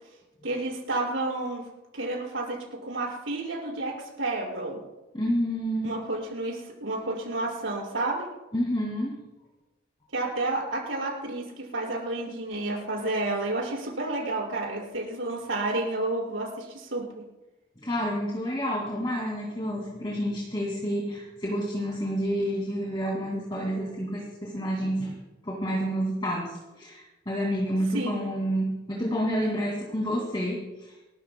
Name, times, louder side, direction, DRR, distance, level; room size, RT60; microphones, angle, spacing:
voice 1, 0.4-1.6 1.9-4.8 5.8-8.3 10.1-17.0 27.9-28.3, right 2 dB, 85° right, -4 dB, 5.9 m, -30 dB
voice 2, 5.1-5.9 8.5-9.2 17.8-25.2 25.4-30.9, equal, 25° left, -3 dB, 2.4 m, -29 dB
28.5 x 13.5 x 2.3 m, 1.0 s
head